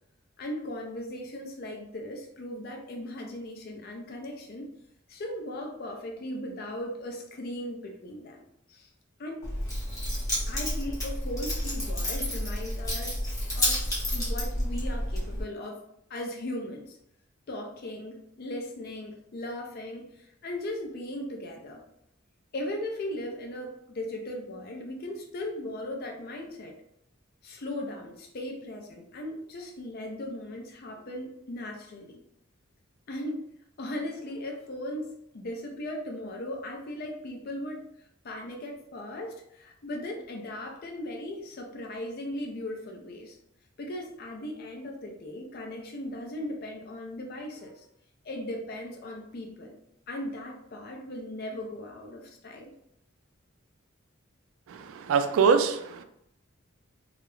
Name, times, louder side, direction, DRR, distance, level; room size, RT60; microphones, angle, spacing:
voice 1, 0.4-4.7 5.1-8.9 9.2-9.5 10.5-13.2 13.5-13.8 14.1-15.8 16.1-17.0 17.5-21.8 22.5-26.8 27.4-32.2 33.1-33.4 33.8-37.8 38.2-43.4 43.8-47.8 48.2-49.8 50.1-52.7, left 1 dB, 50° left, 2 dB, 0.4 m, -38 dB
Keys jangling, 9.4-15.4, equal, 15° left, 0.8 m, -30 dB
voice 2, 54.7-56.0, right 6 dB, 80° right, 9 dB, 0.3 m, -24 dB
2.4 x 2.0 x 2.9 m, 0.76 s
head